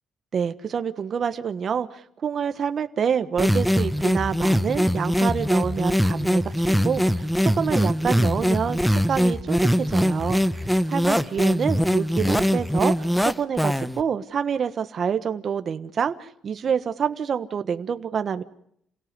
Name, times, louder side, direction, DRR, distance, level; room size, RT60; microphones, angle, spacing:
voice 1, 0.3-18.4, right 7 dB, 55° right, 10 dB, 1.3 m, -27 dB
sound 1, 3.4-14.0, equal, ahead, 1.2 m, -22 dB
28.5 x 17.5 x 9.6 m, 0.72 s
cardioid pair, 90°, 0 cm